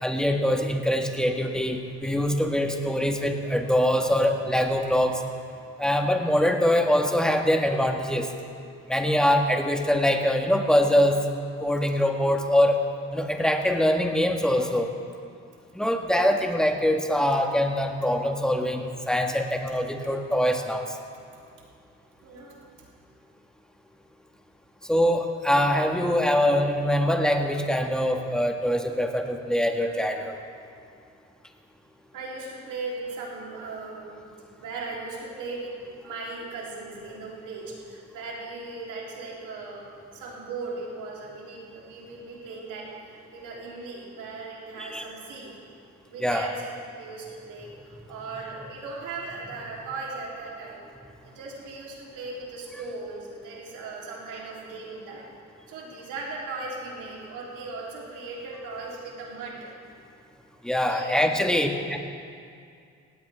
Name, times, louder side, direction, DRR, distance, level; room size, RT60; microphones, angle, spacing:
voice 1, 0.0-5.2 5.8-8.3 8.9-11.2 11.6-12.8 13.1-14.9 15.7-20.9 24.9-30.4 44.8-45.0 46.2-46.5 60.6-62.0, equal, ahead, 3 dB, 1.6 m, -23 dB
voice 2, 22.2-22.6 32.1-34.2 34.6-35.8 36.0-45.5 46.1-46.5 46.9-50.8 51.2-55.2 55.7-59.6 60.8-61.4 61.9-62.0, right 3 dB, 90° right, -4 dB, 3.6 m, -38 dB
18.0 x 16.5 x 3.6 m, 2.3 s
cardioid pair, 90°, 30 cm